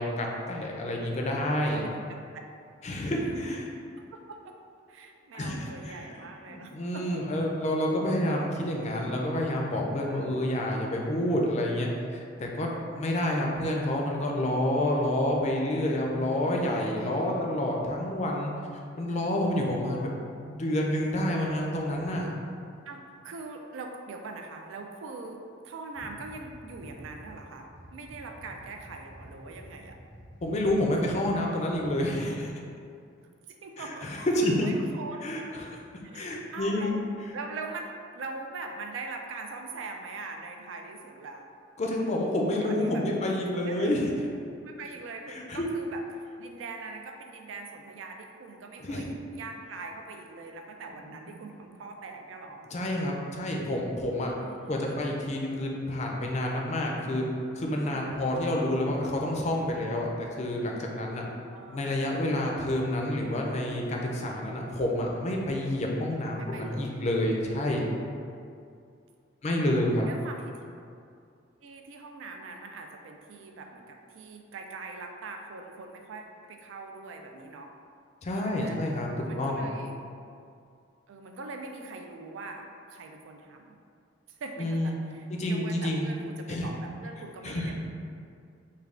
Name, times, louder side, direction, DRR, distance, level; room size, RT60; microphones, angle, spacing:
voice 1, 0.0-1.8 2.8-3.7 5.3-6.2 6.5-11.9 12.4-18.5 19.0-20.1 20.5-22.3 30.4-32.5 33.8-34.7 35.2-35.8 36.1-36.9 37.2-37.3 41.8-44.1 45.3-45.7 48.8-49.1 52.7-54.3 54.7-57.2 57.5-61.3 61.7-67.8 69.4-70.0 78.2-79.7 84.6-85.0 85.3-86.1 86.5-86.7 87.4-87.7, left 1 dB, 35° left, 0 dB, 0.4 m, -29 dB
voice 2, 1.4-2.4 3.5-3.6 4.0-4.5 4.9-7.2 10.1-10.5 17.0-17.5 22.9-25.4 25.6-30.0 31.0-31.4 33.5-34.1 34.6-35.3 36.0-37.0 37.3-41.5 42.5-43.9 44.6-52.6 54.3-55.0 57.9-58.4 61.5-62.0 66.4-67.0 69.5-70.6 71.6-77.7 78.4-78.8 79.3-80.0 81.1-83.8 84.3-87.7, right 3 dB, 80° right, 3 dB, 0.4 m, -42 dB
sound 1, 25.9-27.3 27.7-31.4 31.7-31.9, equal, 60° right, 1.0 m, -49 dB
3.3 x 2.3 x 3.6 m, 2.4 s
head